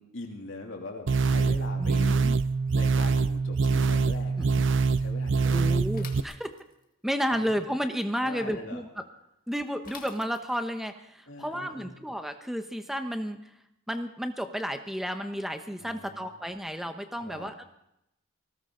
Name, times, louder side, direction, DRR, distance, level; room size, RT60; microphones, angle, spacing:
voice 1, 0.0-2.2 2.7-4.5 5.0-5.8 7.3-7.7 8.2-8.8 11.3-12.0 15.8-16.3 17.2-17.5, left 2 dB, 60° left, 1 dB, 2.8 m, -42 dB
sound 1, 1.1-6.2, right 4 dB, 55° right, 0.5 m, -24 dB
voice 2, 1.8-2.4 4.4-4.6 5.4-6.5 7.0-8.9 9.5-13.5 13.9-17.6, equal, ahead, 7 dB, 0.9 m, -32 dB
Bicycle / Mechanisms, 5.9-6.9 9.8-10.8, left 6 dB, 40° left, 1.8 m, -47 dB
20.0 x 17.5 x 3.9 m, 0.83 s
head